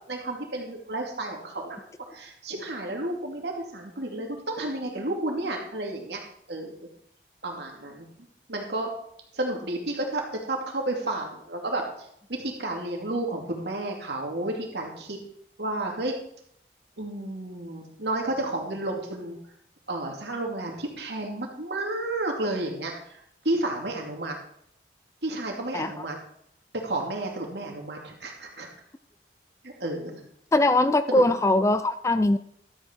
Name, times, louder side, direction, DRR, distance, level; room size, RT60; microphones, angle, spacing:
voice 1, 0.1-1.8 2.1-6.2 6.5-6.9 7.4-8.1 8.5-8.9 9.3-15.2 15.6-16.2 17.0-19.4 19.9-24.4 25.2-26.2 26.8-28.7 29.6-30.2 31.1-31.2, right 2 dB, 75° right, 1 dB, 2.5 m, -31 dB
voice 2, 30.5-32.4, left 2 dB, 15° left, 12 dB, 0.3 m, -21 dB
12.5 x 8.4 x 4.5 m, 0.69 s
head